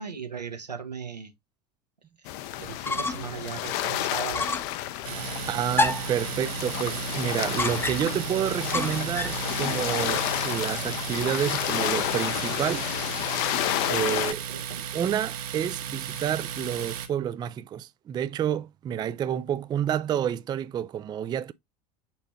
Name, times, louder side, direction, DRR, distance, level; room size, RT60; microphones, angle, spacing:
voice 1, 0.0-1.3 2.2-4.7 5.1-5.8 14.5-14.9, right 6 dB, 85° right, 1.2 m, -38 dB
sound 1, 2.2-14.3, left 14 dB, 50° left, 0.6 m, -31 dB
sound 2, 2.6-3.4 3.7-3.8 4.3-4.8 5.7-6.2 7.6-8.2 8.7-9.4, left 3 dB, 10° left, 0.7 m, -28 dB
Domestic sounds home sounds, 5.0-17.1, right 8 dB, 60° right, 1.4 m, -35 dB
voice 2, 5.5-12.9 13.9-14.4 14.9-21.5, right 9 dB, 20° right, 0.4 m, -29 dB
7.2 x 4.3 x 3.0 m
figure-of-eight pair, 75°, 21 cm